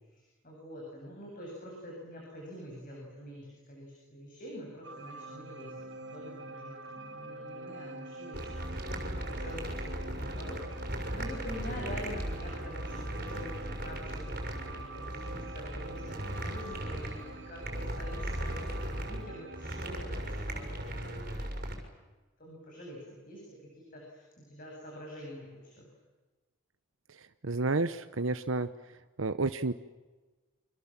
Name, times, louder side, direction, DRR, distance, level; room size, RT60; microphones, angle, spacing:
voice 1, 0.1-21.0 22.4-23.0 23.2-25.9, equal, 45° left, -1 dB, 7.8 m, -46 dB
sound 1, 4.8-19.9, right 2 dB, 60° right, 1.9 m, -46 dB
sound 2, 8.3-21.7, right 1 dB, 45° right, 6.3 m, -37 dB
voice 2, 27.4-28.7 29.2-29.7, right 3 dB, 80° right, 10 dB, 1.0 m, -30 dB
28.5 x 26.0 x 7.5 m, 1.2 s
head